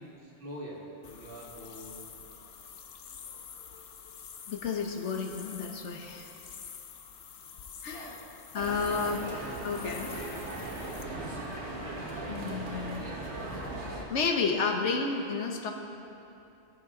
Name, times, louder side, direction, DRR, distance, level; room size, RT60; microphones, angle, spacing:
voice 1, 0.0-2.0 7.9-8.2, equal, 50° right, -3 dB, 1.9 m, -46 dB
sound 1, 1.0-11.0, left 7 dB, 65° left, 0.9 m, -48 dB
voice 2, 4.5-6.3 7.8-8.2 8.5-9.3 9.6-10.1 12.3-13.1 14.1-15.7, left 4 dB, 85° left, 3 dB, 1.3 m, -31 dB
sound 2, 8.6-14.0, right 2 dB, 75° right, 1.8 m, -38 dB
18.5 x 6.9 x 3.8 m, 2.8 s
omnidirectional pair, 1.2 m